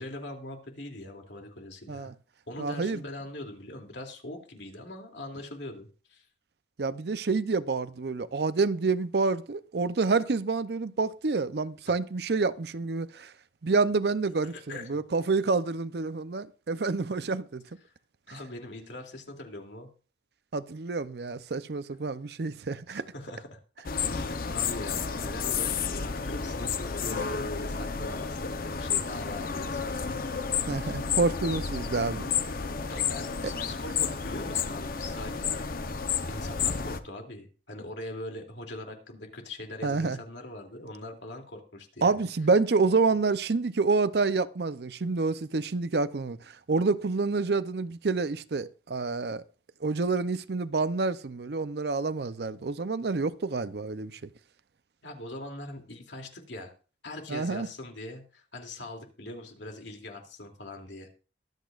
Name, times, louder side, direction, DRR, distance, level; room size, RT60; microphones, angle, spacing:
voice 1, 0.0-2.1 2.5-6.2 11.9-12.0 14.3-15.0 18.3-19.9 22.9-23.6 24.1-30.1 32.9-35.6 36.3-42.2 55.0-56.7 57.0-61.1, left 1 dB, 85° left, 2.7 m, -42 dB
voice 2, 2.6-3.0 6.8-13.3 13.6-17.6 18.3-18.4 20.5-23.0 30.7-32.2 33.4-33.5 39.8-40.2 42.0-46.4 46.7-49.4 49.8-54.2 57.3-57.7, right 4 dB, 60° right, 0.6 m, -28 dB
sound 1, 23.8-37.0, left 6 dB, 55° left, 0.8 m, -31 dB
23.0 x 8.3 x 2.5 m
head